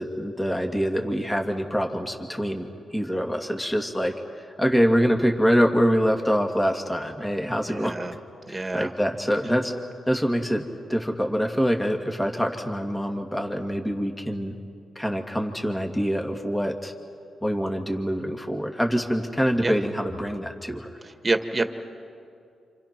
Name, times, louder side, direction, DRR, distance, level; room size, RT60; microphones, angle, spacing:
voice 1, 0.0-7.9 8.5-9.7 10.1-10.6 10.9-14.5 15.0-16.9 17.4-20.9, equal, 10° left, 3 dB, 2.2 m, -25 dB
voice 2, 7.7-8.2 8.5-8.9 19.6-19.7 21.0-21.7, right 2 dB, 25° right, 7 dB, 1.9 m, -27 dB
28.5 x 27.5 x 6.1 m, 2.5 s
cardioid pair, 80°, 0 cm